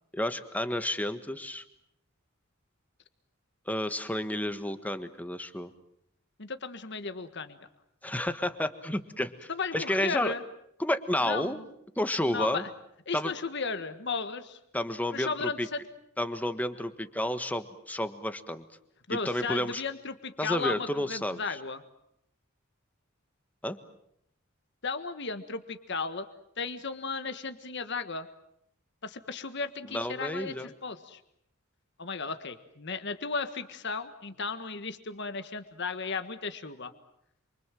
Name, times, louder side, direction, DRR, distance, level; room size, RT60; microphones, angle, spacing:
voice 1, 0.1-1.6 3.7-5.7 8.0-10.3 10.8-11.6 11.9-12.6 13.1-13.3 14.7-15.7 16.2-18.6 19.1-19.8 20.4-21.6 23.6-23.8 29.9-30.7, left 1 dB, 10° left, 10 dB, 1.5 m, -31 dB
voice 2, 6.4-7.6 9.5-10.4 11.2-11.6 12.3-12.7 13.1-14.6 15.1-15.8 19.1-21.8 24.8-26.3 26.6-28.3 29.0-31.2 32.0-36.9, left 4 dB, 60° left, 9 dB, 1.6 m, -35 dB
27.5 x 24.5 x 7.6 m, 0.75 s
head